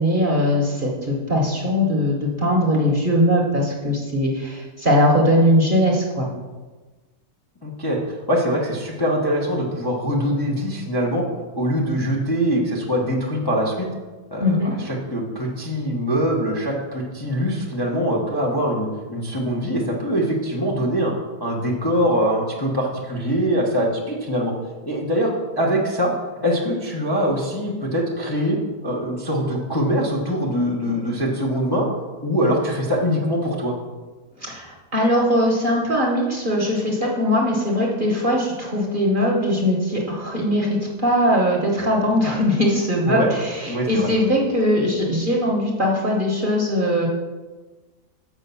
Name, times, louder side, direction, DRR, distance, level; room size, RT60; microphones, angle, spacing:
voice 1, 0.0-6.3 14.4-14.7 34.4-47.1, equal, 35° right, -1 dB, 1.1 m, -20 dB
voice 2, 7.6-11.2 11.6-13.9 14.3-21.1 21.4-24.5 24.8-26.1 26.4-31.9 32.2-33.7 43.0-43.3 43.7-44.1, equal, 20° left, -3 dB, 0.8 m, -23 dB
6.2 x 5.2 x 6.8 m, 1.3 s
omnidirectional pair, 1.8 m